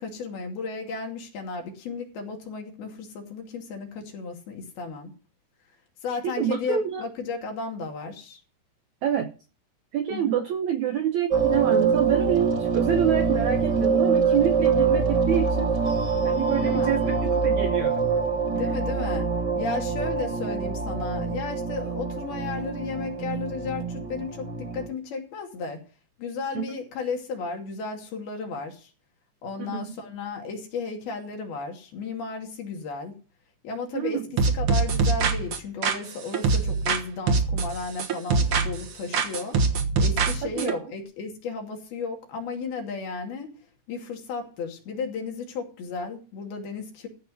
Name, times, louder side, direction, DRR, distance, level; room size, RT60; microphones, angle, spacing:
voice 1, 0.0-5.1 6.0-8.4 10.1-10.4 16.6-17.0 18.5-19.3 19.6-25.8 26.2-28.9 29.4-33.2 33.6-34.2 34.5-39.6 40.0-43.5 43.9-47.1, left 4 dB, 65° left, 2 dB, 4.4 m, -34 dB
voice 2, 6.2-7.0 9.0-9.3 9.9-15.7 16.2-17.2 17.4-18.0 26.5-26.7 29.6-30.0 33.9-34.2 40.4-40.8, right 9 dB, 85° right, 6 dB, 1.6 m, -27 dB
sound 1, 11.3-24.9, right 5 dB, 35° right, 1.9 m, -25 dB
sound 2, 34.4-37.0 37.3-38.9 39.1-40.7, right 4 dB, 70° right, 1.3 m, -23 dB
14.5 x 5.7 x 8.1 m, 0.35 s
omnidirectional pair, 4.8 m